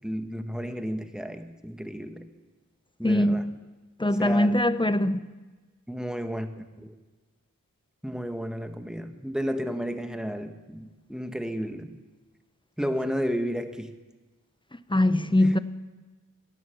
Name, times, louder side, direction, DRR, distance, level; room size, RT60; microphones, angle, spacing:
voice 1, 0.0-2.3 3.0-3.5 4.2-4.6 5.9-6.9 8.0-12.0 12.8-13.9 15.4-15.5, equal, ahead, 1.2 m, -32 dB
voice 2, 3.0-3.5 4.0-5.2 14.9-15.6, left 1 dB, 15° left, 0.6 m, -22 dB
17.5 x 11.0 x 7.0 m
wide cardioid pair, 50°, 33 cm